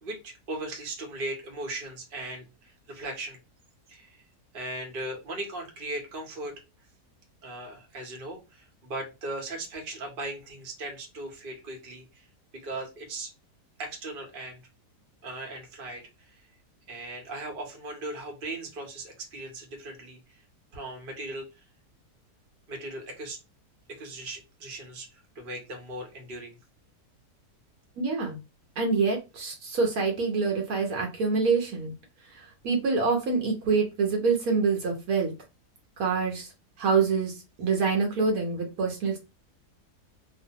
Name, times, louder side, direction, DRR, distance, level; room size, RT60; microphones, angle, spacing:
voice 1, 0.0-2.5 2.9-3.4 3.9-4.2 4.5-6.5 7.4-12.0 12.6-13.3 13.8-14.6 15.2-16.0 16.9-20.2 20.7-21.5 22.7-23.4 24.0-25.1 25.4-26.5, right 2 dB, 45° right, 1 dB, 0.7 m, -38 dB
voice 2, 28.0-28.4 28.8-31.9 32.6-35.3 36.0-36.5 36.8-39.2, right 4 dB, 70° right, 1 dB, 1.1 m, -26 dB
2.7 x 2.2 x 2.7 m, 0.27 s
omnidirectional pair, 1.8 m